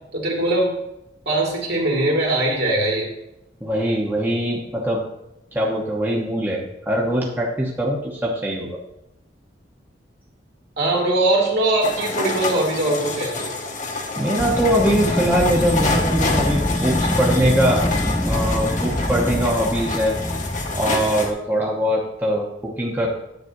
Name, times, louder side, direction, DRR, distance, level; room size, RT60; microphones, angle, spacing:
voice 1, 0.1-0.7 1.3-3.1 10.8-13.5, right 2 dB, 65° right, -3 dB, 2.6 m, -21 dB
voice 2, 3.6-5.0 5.5-8.8 14.1-17.8 18.2-20.2 20.7-23.1, equal, 10° right, -3 dB, 1.1 m, -22 dB
sound 1, 11.8-21.3, left 3 dB, 45° left, 1.0 m, -27 dB
Wind, 14.4-21.3, left 1 dB, 5° left, 0.4 m, -25 dB
10.5 x 8.1 x 2.7 m, 0.87 s
head